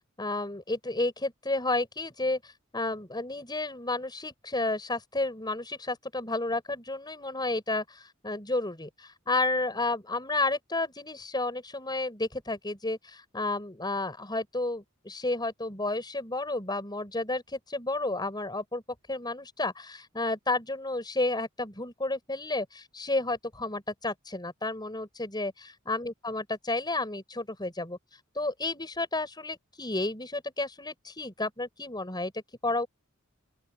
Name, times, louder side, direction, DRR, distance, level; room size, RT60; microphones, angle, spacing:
voice 1, 0.2-18.8 19.1-32.3 32.6-32.9, left 2 dB, 20° left, 6.3 m, -31 dB
open air
head